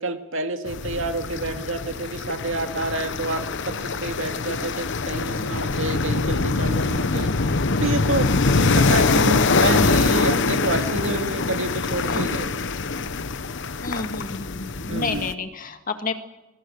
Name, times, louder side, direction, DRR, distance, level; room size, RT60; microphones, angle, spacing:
voice 1, 0.0-12.5 14.9-15.3, right 2 dB, 60° right, 5 dB, 2.3 m, -28 dB
sound 1, 0.7-15.3, left 3 dB, 55° left, 0.9 m, -23 dB
voice 2, 5.2-5.7 7.1-8.0 12.0-12.3 13.8-16.1, left 3 dB, 40° left, 6 dB, 2.1 m, -32 dB
24.0 x 22.0 x 6.4 m, 1.0 s
head